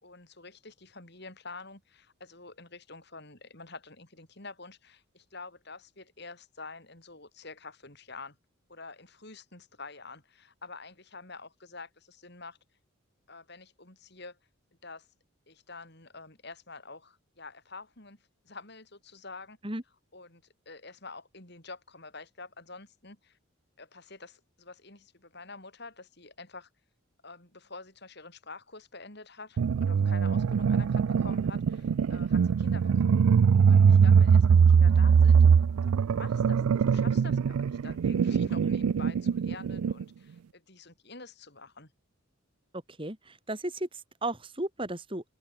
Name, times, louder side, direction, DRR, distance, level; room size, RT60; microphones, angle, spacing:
voice 1, 0.0-8.4 8.7-12.6 13.3-14.4 14.8-15.1 15.5-18.2 18.4-19.6 20.1-23.4 23.8-26.7 27.2-33.2 33.7-41.9, left 3 dB, 50° left, 4.6 m, -47 dB
sound 1, 29.6-40.0, right 6 dB, 85° right, 0.4 m, -22 dB
voice 2, 43.0-45.3, right 1 dB, 25° right, 3.3 m, -35 dB
open air
head